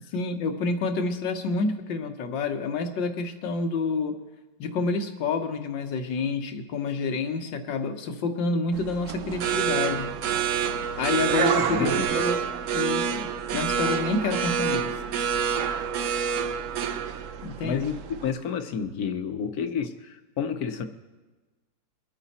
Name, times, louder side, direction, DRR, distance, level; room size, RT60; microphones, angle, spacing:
voice 1, 0.1-4.1 4.6-10.1 11.0-12.4 12.7-14.9 17.4-17.8, left 4 dB, 80° left, 7 dB, 1.9 m, -28 dB
sound 1, 8.7-18.3, right 7 dB, 60° right, 0.8 m, -27 dB
voice 2, 11.7-12.1 17.6-20.8, left 7 dB, 60° left, 8 dB, 1.3 m, -30 dB
23.5 x 8.9 x 4.2 m, 1.2 s
omnidirectional pair, 2.0 m